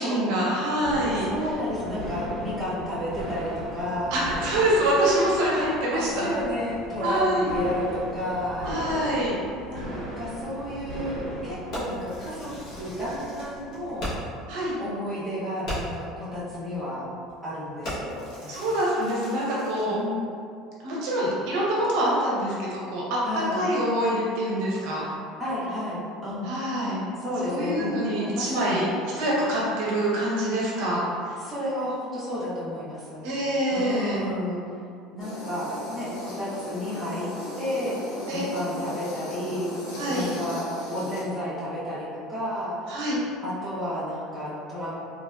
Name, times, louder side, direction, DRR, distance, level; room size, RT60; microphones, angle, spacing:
voice 1, 0.0-1.3 4.1-6.2 7.0-7.5 8.6-9.4 14.5-14.8 18.5-20.0 20.8-25.0 26.4-27.0 27.4-28.8 29.1-31.0 33.2-34.2 38.3-38.4 40.0-40.3 42.9-43.2, right 1 dB, 70° right, -5 dB, 0.8 m, -25 dB
sound 1, 0.8-14.2, equal, 50° right, 1.1 m, -38 dB
voice 2, 1.2-4.2 5.9-8.8 9.7-14.1 14.8-17.1 17.4-18.8 19.8-20.2 23.2-23.6 25.4-26.5 27.2-28.9 30.8-30.9 31.4-33.3 33.7-34.6 35.1-37.3 37.6-39.7 40.1-42.8 43.4-44.9, left 1 dB, ahead, -11 dB, 0.7 m, -32 dB
Fireworks, 11.7-14.4 14.8-14.9 15.2-15.3 15.6-16.1 16.7-16.9 17.2-17.5 17.8-19.9, equal, 50° left, 1.0 m, -37 dB
sound 2, 35.2-41.2, left 1 dB, 75° left, 0.9 m, -37 dB
3.1 x 2.6 x 2.3 m, 2.4 s
cardioid pair, 160°, 0 cm